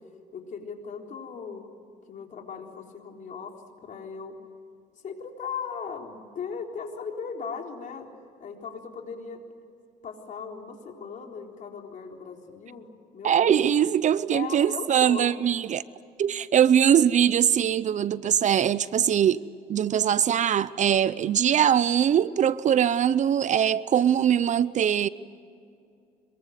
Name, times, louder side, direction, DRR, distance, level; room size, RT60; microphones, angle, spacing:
voice 1, 0.3-1.7 2.1-4.4 5.0-8.1 8.4-9.4 10.0-13.8 14.3-15.4, left 6 dB, 50° left, 4.0 m, -38 dB
voice 2, 13.2-15.8 16.2-19.4 19.7-25.1, right 9 dB, 45° right, 0.7 m, -22 dB
26.0 x 23.0 x 7.9 m
cardioid pair, 110°, 17 cm